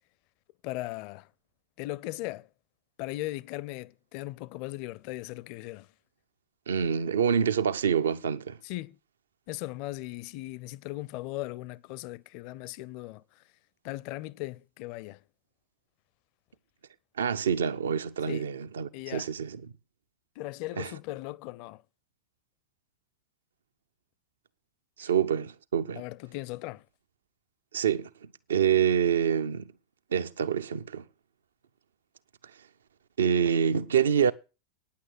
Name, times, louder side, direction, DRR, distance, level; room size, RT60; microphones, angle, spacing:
voice 1, 0.6-1.3 1.8-2.5 3.0-5.9 8.6-9.0 9.5-13.4 13.8-15.2 18.3-18.4 18.9-19.3 20.4-21.8 25.0-25.1 26.0-26.8, left 18 dB, 45° left, 0.5 m, -38 dB
voice 2, 6.7-8.6 17.2-19.7 20.8-20.9 25.0-26.0 27.7-28.1 28.5-29.7 30.1-31.0 33.2-34.3, right 8 dB, 65° right, 0.6 m, -26 dB
9.5 x 8.5 x 7.8 m
figure-of-eight pair, 90°, 0 cm